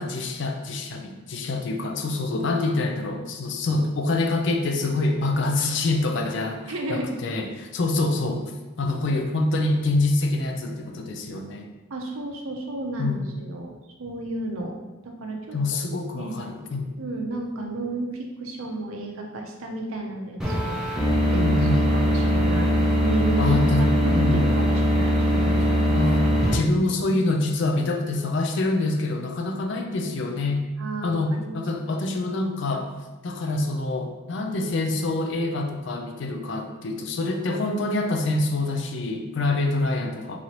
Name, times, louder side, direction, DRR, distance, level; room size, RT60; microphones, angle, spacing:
voice 1, 0.0-8.4 8.8-11.7 13.0-13.4 15.5-16.9 21.3-21.8 23.4-24.4 25.9-30.6 31.0-32.9 33.2-40.4, left 2 dB, 55° left, 4 dB, 0.4 m, -26 dB
voice 2, 6.7-7.1 9.1-9.2 11.9-13.7 14.0-14.8 15.0-15.8 16.1-16.4 17.0-20.8 21.3-21.4 21.9-22.7 23.0-23.5 24.0-25.8 26.8-27.2 30.8-31.6, right 2 dB, 75° right, 1 dB, 0.6 m, -32 dB
sound 1, 20.4-26.6, equal, 5° right, 0.5 m, -21 dB
3.8 x 3.1 x 2.9 m, 1.1 s
head